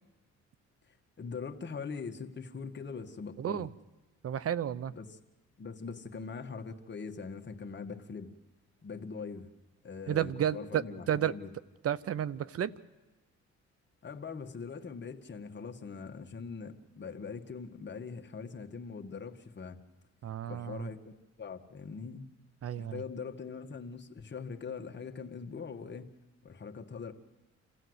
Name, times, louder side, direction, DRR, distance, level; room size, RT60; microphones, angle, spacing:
voice 1, 0.9-3.7 4.9-5.1 5.6-8.3 8.8-9.5 9.8-11.5 14.0-19.8 20.5-22.3 22.7-26.1 26.4-27.1, left 5 dB, 35° left, 5 dB, 1.7 m, -42 dB
voice 2, 3.4-3.7 4.2-4.9 10.1-11.3 11.8-12.7 20.2-20.9 22.6-23.0, right 10 dB, 50° right, 19 dB, 0.8 m, -32 dB
27.0 x 15.5 x 8.0 m, 1.1 s
cardioid pair, 90°, 30 cm